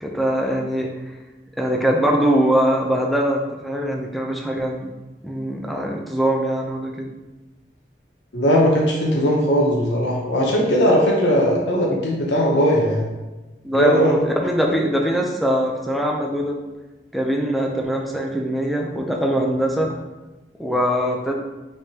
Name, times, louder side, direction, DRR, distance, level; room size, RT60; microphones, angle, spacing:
voice 1, 0.0-0.9 1.6-4.9 5.2-7.1 10.7-10.8 13.6-16.6 17.1-19.9 20.6-21.3, equal, ahead, 0 dB, 0.5 m, -22 dB
voice 2, 8.3-13.1 13.7-14.1, equal, 85° left, -2 dB, 0.8 m, -18 dB
5.3 x 3.4 x 2.8 m, 1.1 s
head